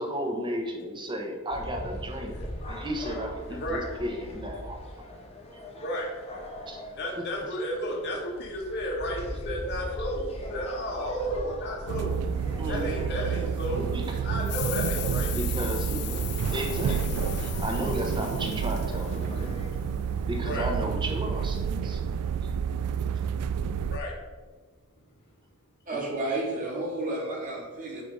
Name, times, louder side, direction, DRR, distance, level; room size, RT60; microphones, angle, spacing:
voice 1, 0.0-4.8 6.7-6.8 7.2-7.3 12.6-13.1 13.7-14.3 15.3-19.6 20.3-22.0 22.4-22.5 25.9-26.0, equal, 20° right, 2 dB, 0.9 m, -34 dB
sound 1, 1.5-19.7, equal, 30° left, 1.2 m, -41 dB
voice 2, 3.5-3.8 5.1-5.2 5.7-6.1 7.0-12.2 12.7-13.9 14.2-15.3 16.9-17.0 20.4-20.7 23.9-24.1, equal, 50° left, -2 dB, 1.2 m, -33 dB
sound 2, 11.9-24.0, right 7 dB, 85° right, 0.3 m, -29 dB
sound 3, 14.4-19.8, left 13 dB, 85° left, 0.6 m, -39 dB
voice 3, 25.9-28.0, right 2 dB, 35° right, -4 dB, 2.2 m, -31 dB
8.3 x 3.4 x 5.1 m, 1.4 s
head